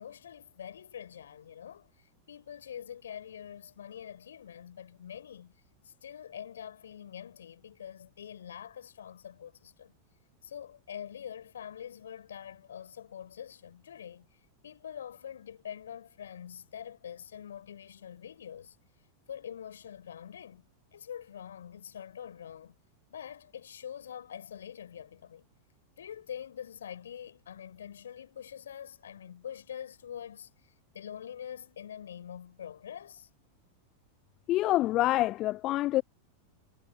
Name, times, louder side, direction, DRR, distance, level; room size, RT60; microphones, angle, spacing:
voice 1, 0.0-5.5 5.8-9.9 10.4-14.3 14.6-18.8 19.3-20.7 20.9-22.8 23.1-25.5 26.0-33.3, left 9 dB, 65° left, 4.9 m, -45 dB
voice 2, 34.5-36.0, left 16 dB, 35° left, 0.4 m, -26 dB
figure-of-eight pair, 90°, 0 cm